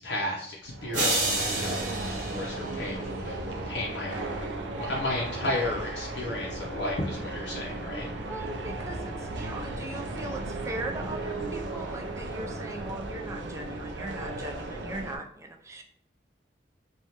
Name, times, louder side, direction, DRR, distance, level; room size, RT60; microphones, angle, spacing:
voice 1, 0.0-4.5 4.7-8.1, left 1 dB, 75° left, -3 dB, 0.5 m, -33 dB
sound 1, 0.6-15.2, right 2 dB, 85° right, 0.4 m, -35 dB
sound 2, 0.9-3.3, right 2 dB, 50° right, 0.9 m, -30 dB
voice 2, 8.3-15.8, right 2 dB, 15° right, 3 dB, 0.3 m, -39 dB
3.1 x 2.2 x 2.7 m, 0.65 s
head